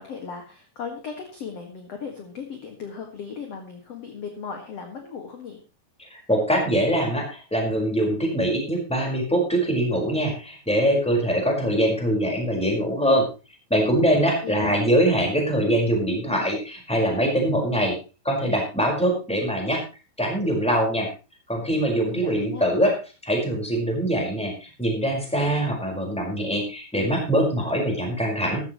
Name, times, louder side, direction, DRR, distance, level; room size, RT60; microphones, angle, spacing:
voice 1, 0.0-5.6 14.1-14.8 22.1-22.7, left 6 dB, 45° left, 3 dB, 2.3 m, -37 dB
voice 2, 6.0-13.3 13.7-18.0 18.2-19.8 20.2-21.1 21.5-22.9 23.2-28.6, right 1 dB, ahead, 0 dB, 4.6 m, -23 dB
15.0 x 14.0 x 3.2 m, 0.32 s
omnidirectional pair, 5.0 m